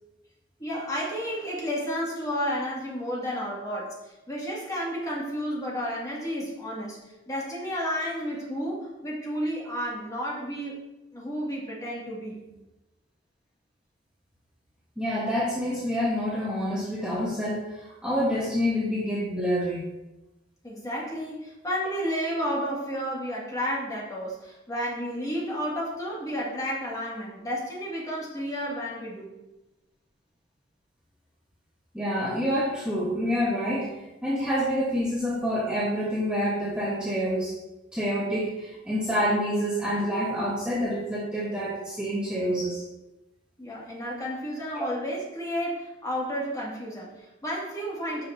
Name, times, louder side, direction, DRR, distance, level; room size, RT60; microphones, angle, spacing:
voice 1, 0.6-10.8 11.1-12.4 20.6-29.3 43.6-48.3, equal, 20° left, -5 dB, 2.2 m, -32 dB
voice 2, 15.0-19.9 31.9-37.5 37.9-42.8 44.8-44.9, equal, 5° right, -7 dB, 1.3 m, -27 dB
9.6 x 6.2 x 2.8 m, 1.0 s
head